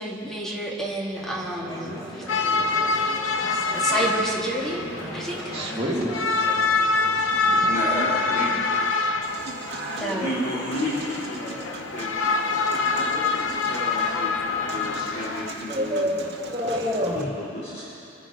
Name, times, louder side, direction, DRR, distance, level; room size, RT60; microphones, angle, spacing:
voice 1, 0.0-2.5 3.7-4.8 5.1-5.6 10.0-10.4, right 1 dB, ahead, -3 dB, 2.1 m, -30 dB
Conversation / Chatter, 1.1-7.8, equal, 20° left, 2.8 m, -38 dB
sound 1, 2.3-15.5, left 3 dB, 70° left, 0.8 m, -26 dB
voice 2, 5.5-6.2 15.7-17.3, equal, 30° right, -4 dB, 2.4 m, -27 dB
voice 3, 7.6-8.5 10.0-12.6 13.0-16.2 17.1-17.8, left 1 dB, 45° left, -9 dB, 2.9 m, -32 dB
Human voice / Acoustic guitar / Piano, 9.2-17.2, right 3 dB, 60° right, 1.6 m, -39 dB
26.0 x 9.7 x 5.1 m, 2.7 s
head